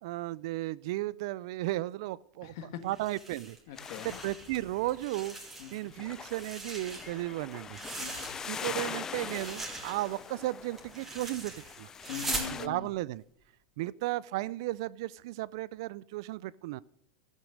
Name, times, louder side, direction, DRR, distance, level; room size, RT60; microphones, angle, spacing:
voice 1, 0.0-2.6 2.8-3.6 4.0-5.4 5.7-7.8 8.5-11.9 12.6-13.2 13.8-16.8, right 17 dB, 60° right, 21 dB, 0.4 m, -34 dB
voice 2, 2.4-2.8 3.7-4.2 5.6-5.7 6.0-6.1 8.0-8.4 12.1-12.9, left 9 dB, 60° left, 9 dB, 1.6 m, -42 dB
sound 1, 2.9-4.6 4.9-5.9 6.2-8.7 9.0-12.5, right 2 dB, 10° right, 2.6 m, -41 dB
sound 2, 3.8-12.7, left 7 dB, 20° left, 0.4 m, -43 dB
14.0 x 8.2 x 6.5 m, 0.70 s
supercardioid pair, 145°, 3 cm